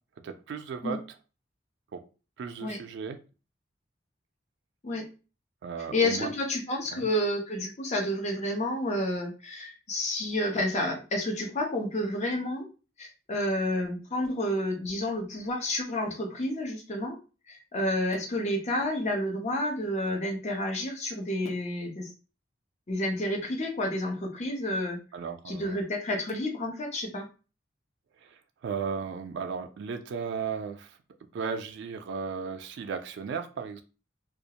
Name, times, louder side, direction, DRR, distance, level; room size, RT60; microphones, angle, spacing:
voice 1, 0.2-1.0 1.9-2.0 2.4-3.2 5.6-6.3 6.9-7.1 25.1-25.8 28.2-31.0 31.3-33.8, right 6 dB, 65° right, 7 dB, 0.3 m, -35 dB
voice 2, 5.9-12.7 13.0-17.2 17.5-22.1 22.9-25.0 25.5-27.3, left 1 dB, 40° left, 2 dB, 0.6 m, -30 dB
2.3 x 2.1 x 2.8 m, 0.33 s
head